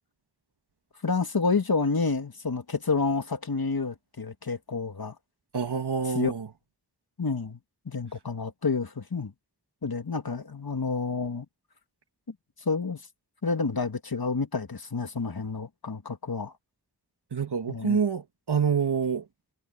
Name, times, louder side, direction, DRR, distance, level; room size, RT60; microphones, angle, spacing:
voice 1, 1.0-5.1 6.1-6.3 7.2-7.6 7.9-9.3 9.8-11.5 12.7-13.0 13.4-16.5 17.7-18.0, left 4 dB, 65° left, 1.9 m, -29 dB
voice 2, 5.5-6.5 17.3-19.3, right 6 dB, 85° right, 1.6 m, -27 dB
wide cardioid pair, 45°, 39 cm